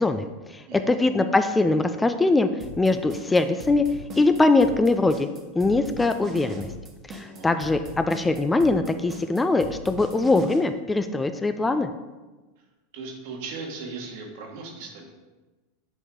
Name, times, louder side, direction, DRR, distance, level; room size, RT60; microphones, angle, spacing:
voice 1, 0.0-2.5 2.8-3.8 4.2-5.3 5.6-6.7 7.1-11.9, left 2 dB, 10° left, 9 dB, 0.4 m, -22 dB
voice 2, 0.7-1.1 7.2-7.5 12.9-15.1, right 4 dB, 65° right, 1 dB, 1.5 m, -38 dB
sound 1, 2.6-10.6, equal, 35° right, 1.3 m, -39 dB
7.8 x 4.5 x 3.8 m, 1.2 s
hypercardioid pair, 100°, 0 cm